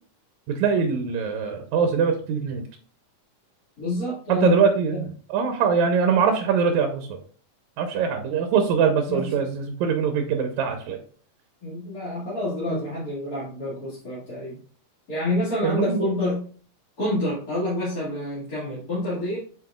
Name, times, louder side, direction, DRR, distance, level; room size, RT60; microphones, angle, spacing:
voice 1, 0.5-2.6 4.3-7.2 7.8-11.0 12.7-12.8 15.6-16.0, right 6 dB, 75° right, 5 dB, 2.0 m, -23 dB
voice 2, 3.8-4.6 4.9-5.0 9.1-9.3 11.6-14.6 15.1-16.5 17.0-19.4, left 1 dB, 35° left, -10 dB, 2.1 m, -28 dB
7.7 x 5.5 x 2.3 m, 0.43 s
omnidirectional pair, 3.5 m